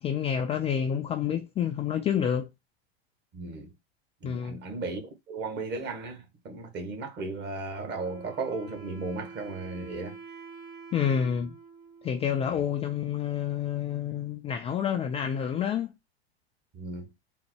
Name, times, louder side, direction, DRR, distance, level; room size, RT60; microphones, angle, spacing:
voice 1, 0.0-2.5 4.2-4.6 10.9-11.5 12.0-15.9, left 8 dB, 20° left, 0.3 m, -28 dB
voice 2, 3.3-3.7 4.2-5.0 5.3-10.2 12.5-12.6 16.7-17.1, right 3 dB, 35° right, 1.4 m, -35 dB
Wind instrument woodwind instrument, 7.7-13.2, right 5 dB, 60° right, 2.5 m, -48 dB
3.9 x 2.1 x 4.3 m
hypercardioid pair, 100°, 32 cm